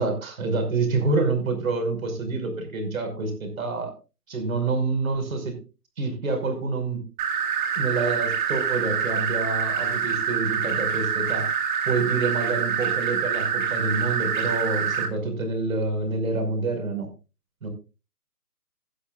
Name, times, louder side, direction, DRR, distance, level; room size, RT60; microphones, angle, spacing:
voice 1, 0.0-3.9 4.3-5.6 6.0-7.0 7.8-11.5 11.9-17.1 17.6-17.7, right 3 dB, 55° right, 5 dB, 5.8 m, -27 dB
sound 1, 7.2-15.1, right 7 dB, 30° right, 2.3 m, -26 dB
17.5 x 11.5 x 2.5 m, 0.30 s
hypercardioid pair, 155°, 48 cm